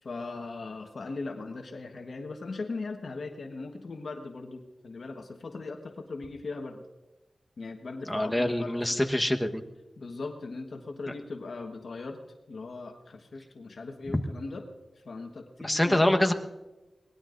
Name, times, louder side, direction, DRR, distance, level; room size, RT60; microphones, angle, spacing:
voice 1, 0.0-6.8 7.6-9.0 10.0-12.2 12.5-14.6 15.0-16.0, left 3 dB, 75° left, 4 dB, 1.3 m, -39 dB
voice 2, 8.1-9.6 14.1-14.2 15.6-16.3, left 1 dB, 10° left, 4 dB, 1.2 m, -25 dB
23.0 x 19.0 x 2.6 m, 1.1 s
wide cardioid pair, 75°, 0 cm